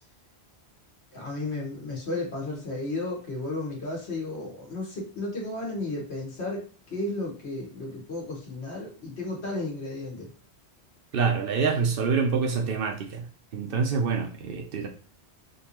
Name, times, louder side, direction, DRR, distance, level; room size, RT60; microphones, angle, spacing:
voice 1, 1.1-10.3, left 2 dB, 75° left, -2 dB, 1.6 m, -33 dB
voice 2, 11.1-13.3 13.5-14.9, right 5 dB, 65° right, 5 dB, 0.7 m, -26 dB
3.9 x 2.6 x 2.9 m, 0.40 s
omnidirectional pair, 1.1 m